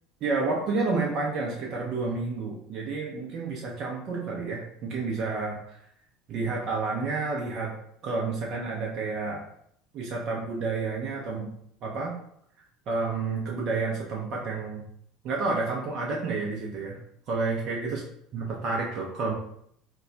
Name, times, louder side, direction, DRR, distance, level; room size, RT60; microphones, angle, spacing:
voice 1, 0.2-5.6 6.3-7.7 8.0-9.4 9.9-11.5 11.8-12.1 12.9-14.8 15.2-17.0 17.3-18.0 18.3-19.3, right 3 dB, 50° right, -2 dB, 0.6 m, -30 dB
2.2 x 2.2 x 3.8 m, 0.69 s
hypercardioid pair, 70°, 0 cm